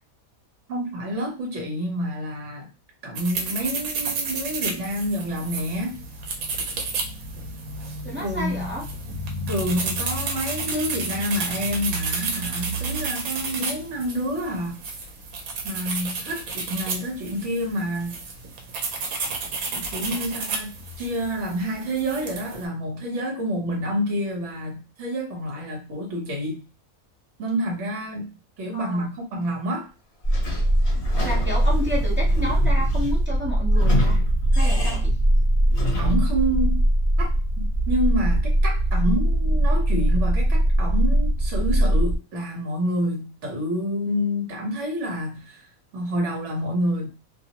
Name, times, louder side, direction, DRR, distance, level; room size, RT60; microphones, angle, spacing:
voice 1, 0.7-2.7 3.0-6.0 8.2-8.7 9.5-14.8 15.6-18.2 19.7-26.6 27.4-28.3 28.6-29.9 36.0-36.8 37.2-45.6 45.9-47.1, equal, 60° right, 1.2 m, -28 dB
sound 1, 3.2-22.6, right 3 dB, 85° right, 1.1 m, -31 dB
voice 2, 8.0-8.8 28.7-29.1 31.2-34.2 34.5-35.1, equal, 15° right, 0.5 m, -31 dB
sound 2, 30.2-42.2, right 1 dB, 20° left, 1.0 m, -21 dB
Sliding door / Squeak, 30.3-36.4, equal, 55° left, 0.9 m, -31 dB
2.7 x 2.0 x 2.8 m
omnidirectional pair, 1.5 m